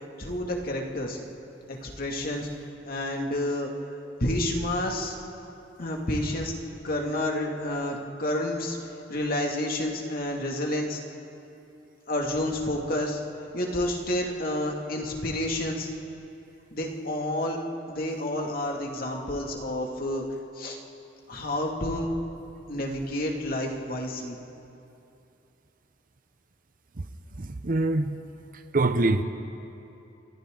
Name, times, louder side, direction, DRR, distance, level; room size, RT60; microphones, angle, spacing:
voice 1, 0.2-1.3 1.7-2.5 2.9-3.7 4.2-5.1 5.8-6.5 6.8-8.8 9.1-11.0 12.1-13.2 13.5-15.9 16.7-17.6 17.9-20.2 20.6-20.8 21.3-22.1 22.7-24.4, left 1 dB, 55° left, 0 dB, 2.4 m, -29 dB
voice 2, 27.6-28.1 28.7-29.2, right 2 dB, 50° right, 8 dB, 0.8 m, -23 dB
28.5 x 24.5 x 3.9 m, 2.8 s
head